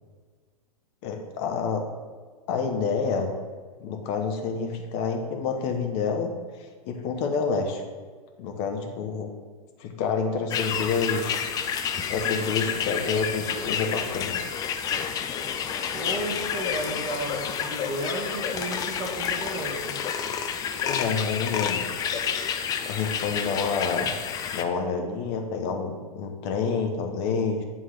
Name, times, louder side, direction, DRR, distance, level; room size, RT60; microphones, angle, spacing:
voice 1, 1.0-1.8 2.5-3.3 3.8-6.3 6.6-7.8 8.4-9.3 9.8-11.3 12.1-14.4 20.8-21.9 22.8-24.2 24.5-27.6, left 5 dB, 40° left, 4 dB, 1.1 m, -28 dB
sound 1, 10.5-24.6, left 7 dB, 20° left, 0.4 m, -29 dB
voice 2, 15.9-20.0, right 1 dB, 20° right, -6 dB, 1.2 m, -33 dB
8.4 x 3.8 x 4.8 m, 1.5 s
hypercardioid pair, 110°, 20 cm